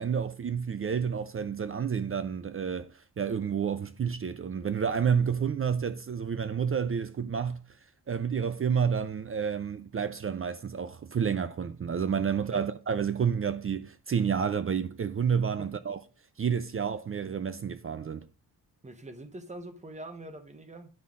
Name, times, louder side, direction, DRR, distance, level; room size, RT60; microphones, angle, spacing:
voice 1, 0.0-7.6 8.1-16.0 16.4-18.3, right 7 dB, 35° right, 0.5 m, -30 dB
voice 2, 18.8-20.9, right 2 dB, 20° right, 1.0 m, -43 dB
9.7 x 5.5 x 3.7 m
wide cardioid pair, 135°, 38 cm